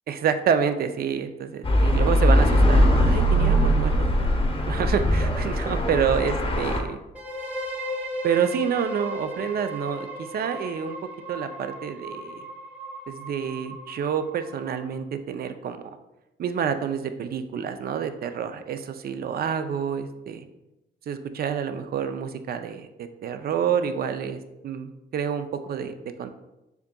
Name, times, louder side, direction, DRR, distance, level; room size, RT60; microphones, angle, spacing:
voice 1, 0.1-4.1 4.6-7.0 8.2-12.5 13.1-16.0 16.4-20.5 21.1-26.3, right 7 dB, 50° right, 9 dB, 0.4 m, -28 dB
sound 1, 1.6-6.8, equal, 30° left, 0.7 m, -20 dB
sound 2, 7.1-14.9, equal, 5° right, 0.8 m, -36 dB
7.0 x 2.6 x 2.2 m, 0.95 s
cardioid pair, 90°, 20 cm